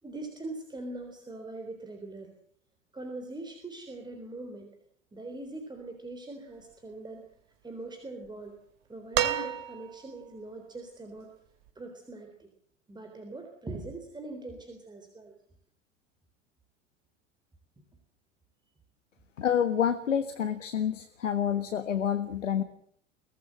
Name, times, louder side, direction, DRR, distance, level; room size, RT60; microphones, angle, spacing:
voice 1, 0.0-2.3 2.9-4.7 5.1-7.3 7.6-8.6 8.9-11.3 11.8-12.5 12.9-15.3, right 2 dB, 10° right, 4 dB, 3.8 m, -42 dB
sound 1, 9.1-10.2 11.7-11.8, right 10 dB, 50° right, 2.5 m, -30 dB
voice 2, 19.4-22.6, left 8 dB, 75° left, 11 dB, 1.5 m, -28 dB
23.5 x 18.0 x 7.7 m, 0.65 s
figure-of-eight pair, 90°, 38 cm